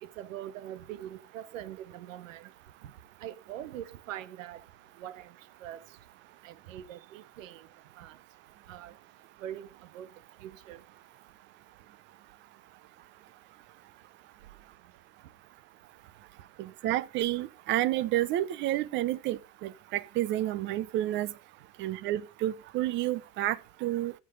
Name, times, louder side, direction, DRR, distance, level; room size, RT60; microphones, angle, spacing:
voice 1, 0.0-2.5 3.2-4.6 5.0-5.3 5.6-5.8 6.4-7.7 8.0-8.2 8.7-8.9 9.4-9.7 9.9-10.1 10.4-10.8, right 11 dB, 80° right, 1.5 m, -42 dB
voice 2, 16.6-21.3 21.8-24.1, right 14 dB, 30° right, 0.6 m, -30 dB
14.0 x 6.7 x 5.2 m
supercardioid pair, 150°, 38 cm